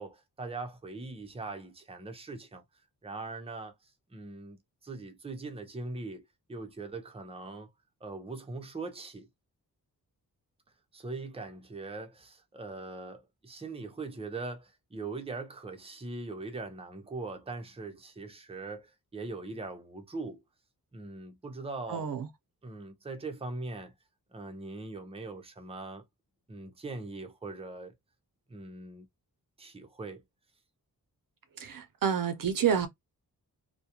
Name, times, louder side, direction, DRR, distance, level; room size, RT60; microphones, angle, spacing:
voice 1, 0.0-2.6 3.0-3.7 4.1-4.6 4.8-7.7 8.0-9.3 10.9-20.4 20.9-22.1 22.6-23.9 24.3-26.0 26.5-27.9 28.5-29.1 29.6-30.2, right 3 dB, 15° right, 0.6 m, -41 dB
voice 2, 21.9-22.3 31.6-32.9, right 8 dB, 60° right, 0.6 m, -28 dB
2.3 x 2.1 x 2.8 m
wide cardioid pair, 85°, 38 cm